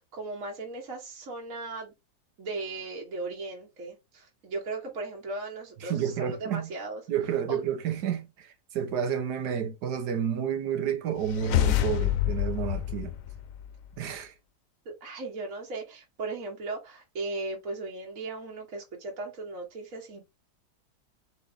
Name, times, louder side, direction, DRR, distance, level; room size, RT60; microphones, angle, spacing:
voice 1, 0.1-1.9 2.4-7.0 7.5-7.6 14.8-20.2, right 3 dB, 55° right, 1.5 m, -37 dB
voice 2, 5.8-6.7 7.1-13.2 14.0-14.3, right 8 dB, 85° right, 1.5 m, -30 dB
sound 1, 11.2-14.0, left 13 dB, 65° left, 0.9 m, -28 dB
4.1 x 3.9 x 3.3 m
omnidirectional pair, 1.7 m